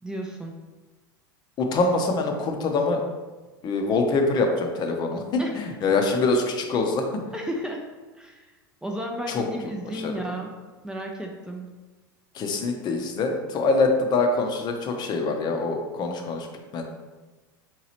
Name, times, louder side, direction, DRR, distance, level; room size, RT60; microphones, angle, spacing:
voice 1, 0.0-0.5 5.4-5.6 7.3-7.9 8.2-8.5 8.8-10.5 10.8-11.6, right 1 dB, 5° right, 0 dB, 0.4 m, -33 dB
voice 2, 1.6-3.0 3.6-7.1 9.3-9.4 9.9-10.1 12.3-16.5 16.7-16.8, left 3 dB, 35° left, 3 dB, 0.6 m, -24 dB
3.8 x 2.9 x 2.8 m, 1.2 s
hypercardioid pair, 95°, 12 cm